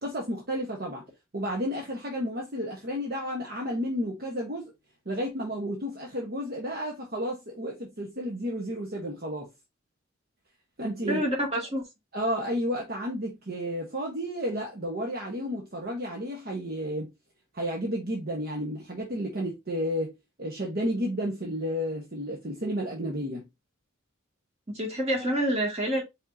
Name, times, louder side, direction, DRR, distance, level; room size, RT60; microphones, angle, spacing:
voice 1, 0.0-1.0 1.3-4.7 5.1-9.5 10.8-11.3 12.1-17.1 17.5-20.1 20.4-23.4, equal, 50° right, 1.0 m, -32 dB
voice 2, 11.1-11.8 24.7-26.0, equal, 30° right, 2.0 m, -27 dB
5.1 x 3.6 x 2.6 m
head